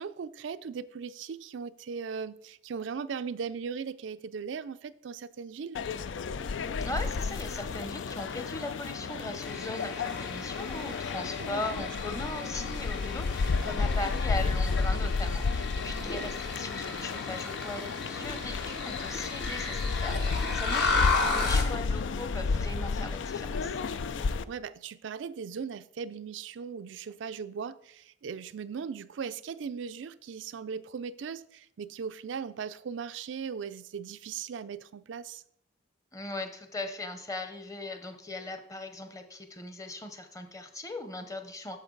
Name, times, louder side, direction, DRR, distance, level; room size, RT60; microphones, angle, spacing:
voice 1, 0.0-5.8 11.4-12.2 15.9-16.4 19.9-20.2 24.2-35.4, right 6 dB, 85° right, 0.4 m, -39 dB
sound 1, 5.7-24.4, left 4 dB, 90° left, 0.4 m, -32 dB
voice 2, 6.8-23.8 36.1-41.8, left 2 dB, 20° left, 0.8 m, -39 dB
sound 2, 9.4-21.7, left 3 dB, 65° left, 1.6 m, -34 dB
sound 3, 15.9-23.7, left 2 dB, 50° left, 0.9 m, -47 dB
9.6 x 6.9 x 3.9 m
head